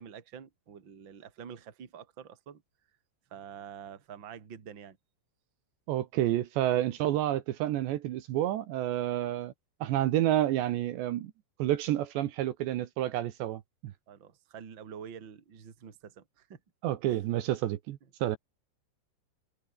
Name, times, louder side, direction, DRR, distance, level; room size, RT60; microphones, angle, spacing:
voice 1, 0.0-2.6 3.3-5.0 14.1-16.6, right 7 dB, 30° right, 2.5 m, -47 dB
voice 2, 5.9-9.5 9.8-11.3 11.6-13.9 16.8-18.4, right 13 dB, 75° right, 3.3 m, -29 dB
omnidirectional pair, 5.5 m